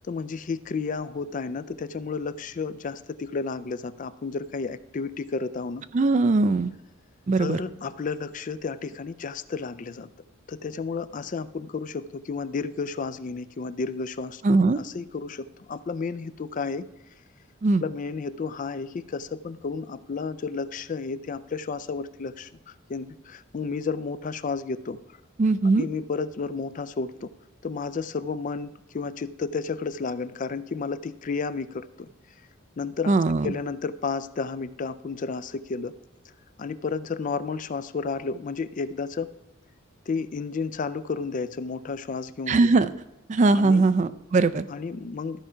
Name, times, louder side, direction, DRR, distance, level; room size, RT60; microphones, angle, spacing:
voice 1, 0.1-5.9 7.4-10.1 10.5-16.9 17.8-25.0 25.6-27.3 27.6-32.1 32.8-33.2 33.4-35.9 36.6-39.3 40.1-42.7 43.5-44.0 44.7-45.4, left 4 dB, 40° left, 15 dB, 0.4 m, -32 dB
voice 2, 5.9-6.7 7.3-7.6 14.4-14.8 17.6-17.8 25.4-25.8 33.1-33.5 42.5-42.9 43.3-44.7, right 3 dB, 35° right, 13 dB, 0.4 m, -20 dB
13.5 x 4.9 x 5.6 m, 0.98 s
head